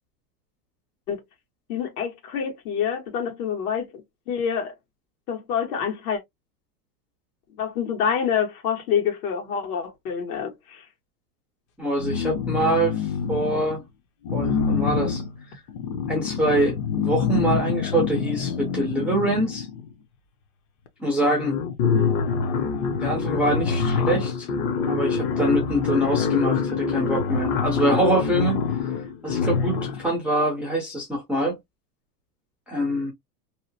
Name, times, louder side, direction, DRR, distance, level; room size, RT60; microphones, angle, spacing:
voice 1, 1.7-4.7 5.3-6.2 7.6-10.8, left 7 dB, 65° left, 1.4 m, -27 dB
voice 2, 11.8-13.8 14.3-15.2 15.5-15.6 16.1-19.7 21.0-21.6 23.0-24.5 24.9-28.6 29.2-31.6 32.7-33.1, right 1 dB, 5° right, 0.3 m, -24 dB
sound 1, 12.0-13.8 14.2-19.9 20.9-21.0 21.2-30.1, left 6 dB, 40° left, 0.7 m, -25 dB
2.8 x 2.0 x 2.7 m
supercardioid pair, 130°, 47 cm